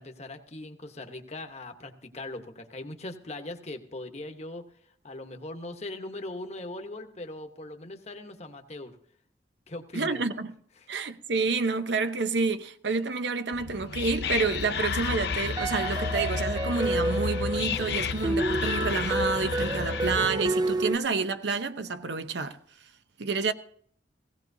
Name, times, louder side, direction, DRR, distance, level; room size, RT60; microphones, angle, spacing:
voice 1, 0.0-4.6 5.0-9.0 9.7-10.2 10.8-10.9, left 2 dB, 40° left, 1.1 m, -40 dB
voice 2, 9.9-10.5 10.9-22.6 23.2-23.5, right 4 dB, 75° right, 0.7 m, -29 dB
Whispering, 13.5-20.4, left 5 dB, 60° left, 0.6 m, -32 dB
sound 1, 14.3-21.0, right 2 dB, 25° right, 0.4 m, -31 dB
16.5 x 16.5 x 2.7 m
head